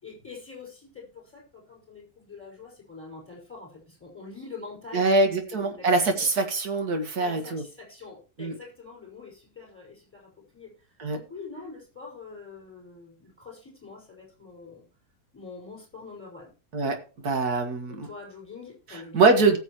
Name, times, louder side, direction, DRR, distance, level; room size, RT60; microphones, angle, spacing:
voice 1, 0.0-6.3 7.2-14.8 15.3-16.5 17.9-19.6, left 4 dB, 5° left, -1 dB, 5.5 m, -44 dB
voice 2, 4.9-7.6 8.4-8.5 11.0-11.2 16.7-17.0 17.2-18.1 19.1-19.6, right 3 dB, 75° right, 5 dB, 2.2 m, -23 dB
18.5 x 6.8 x 3.0 m, 0.34 s
omnidirectional pair, 1.6 m